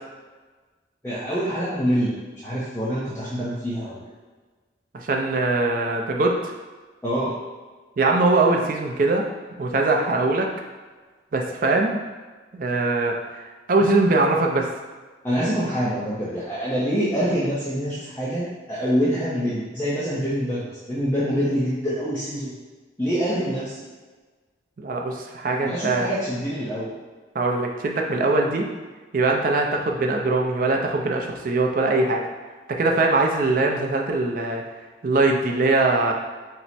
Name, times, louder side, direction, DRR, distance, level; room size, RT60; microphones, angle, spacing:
voice 1, 1.0-2.2 2.4-4.0 7.0-7.3 15.2-22.5 23.0-23.8 25.6-26.9, equal, 15° left, -10 dB, 0.5 m, -25 dB
voice 2, 4.9-6.5 8.0-9.2 9.6-10.5 11.3-12.0 12.5-13.1 13.7-14.7 24.8-26.1 27.3-28.6 29.1-32.2 32.7-34.6 35.0-36.1, right 2 dB, 45° right, 1 dB, 0.4 m, -21 dB
4.4 x 2.0 x 4.1 m, 1.3 s
head